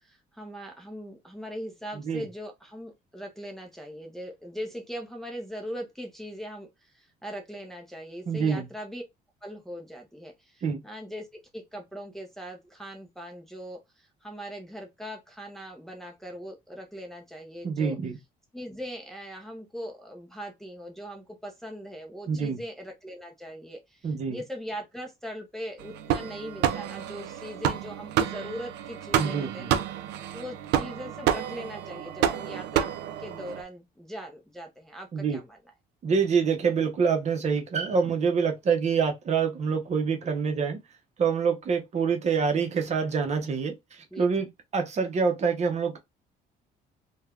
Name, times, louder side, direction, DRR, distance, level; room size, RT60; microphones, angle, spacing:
voice 1, 0.0-9.0 9.4-18.0 18.5-29.8 30.3-32.9 33.2-35.6 44.1-44.3, equal, ahead, 0.5 m, -40 dB
voice 2, 8.3-8.7 10.6-10.8 17.6-18.2 22.3-22.6 24.0-24.4 29.2-29.7 35.1-35.4 36.0-40.8 41.2-44.5 44.7-46.0, right 5 dB, 40° right, 0.7 m, -26 dB
sound 1, 25.8-33.6, right 10 dB, 80° right, 0.4 m, -29 dB
3.2 x 2.2 x 2.3 m
cardioid pair, 110°, 17 cm